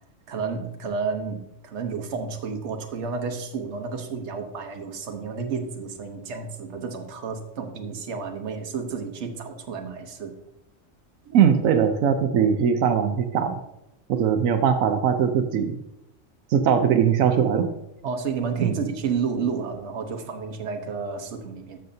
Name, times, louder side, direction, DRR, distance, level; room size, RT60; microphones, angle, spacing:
voice 1, 0.3-10.3 18.0-21.8, right 5 dB, 60° right, 5 dB, 1.2 m, -31 dB
voice 2, 11.3-13.6 14.1-15.8 16.5-17.7 18.6-18.8, right 8 dB, 85° right, 7 dB, 1.1 m, -21 dB
12.0 x 6.7 x 2.7 m, 0.84 s
omnidirectional pair, 1.4 m